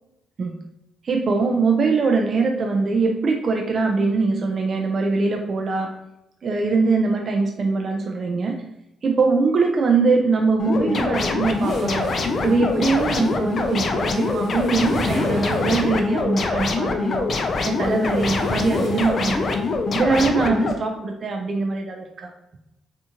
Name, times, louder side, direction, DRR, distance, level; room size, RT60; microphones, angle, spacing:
voice 1, 1.0-5.9 6.4-8.5 9.0-12.1 12.4-17.3 17.6-19.5 19.9-22.3, right 4 dB, 45° right, 2 dB, 0.3 m, -22 dB
sound 1, 10.6-20.7, left 3 dB, 45° left, 0.4 m, -24 dB
sound 2, 11.5-16.2 17.2-19.7, left 1 dB, 65° left, 0.9 m, -34 dB
2.5 x 2.4 x 2.8 m, 0.89 s
cardioid pair, 90°, 0 cm